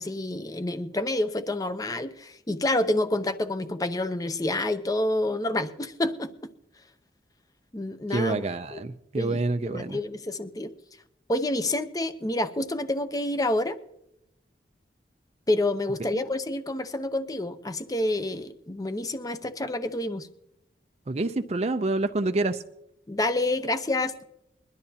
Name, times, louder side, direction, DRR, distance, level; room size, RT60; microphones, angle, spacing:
voice 1, 0.0-6.3 7.7-8.4 8.7-8.8 9.2-10.7 11.3-13.8 15.5-20.3 23.1-24.2, left 1 dB, 20° left, 0.7 m, -28 dB
voice 2, 8.1-10.0 21.1-22.6, right 2 dB, 40° right, 0.5 m, -27 dB
22.0 x 12.5 x 2.8 m
head